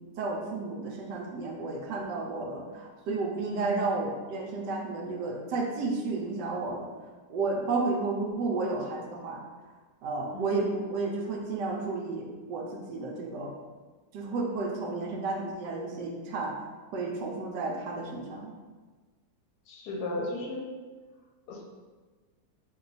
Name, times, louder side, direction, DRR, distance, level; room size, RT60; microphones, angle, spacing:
voice 1, 0.2-6.9 7.3-9.4 10.0-13.5 14.1-16.5 16.9-18.5, right 3 dB, 80° right, 0 dB, 1.2 m, -32 dB
voice 2, 19.7-20.6 21.5-21.6, left 2 dB, 70° left, -1 dB, 1.1 m, -35 dB
3.0 x 2.3 x 3.9 m, 1.4 s
omnidirectional pair, 1.8 m